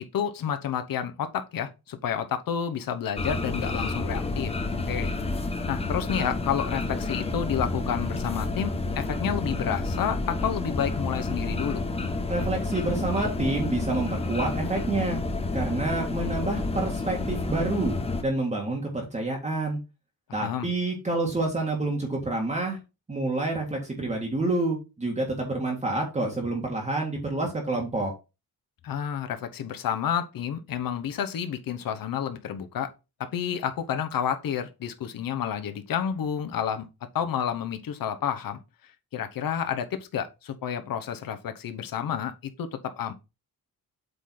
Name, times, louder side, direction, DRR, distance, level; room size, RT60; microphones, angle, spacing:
voice 1, 0.0-4.5 4.9-5.1 5.7-11.8 20.3-20.7 28.8-32.9 33.2-36.9 37.1-38.6 39.1-43.1, left 8 dB, 70° left, 1.0 m, -30 dB
sound 1, 3.2-18.2, left 2 dB, 15° left, 0.9 m, -30 dB
voice 2, 12.3-15.2 15.5-17.9 18.2-19.8 20.3-22.8 23.1-28.1, right 2 dB, 20° right, 1.7 m, -28 dB
8.1 x 3.9 x 4.3 m
wide cardioid pair, 180°, 36 cm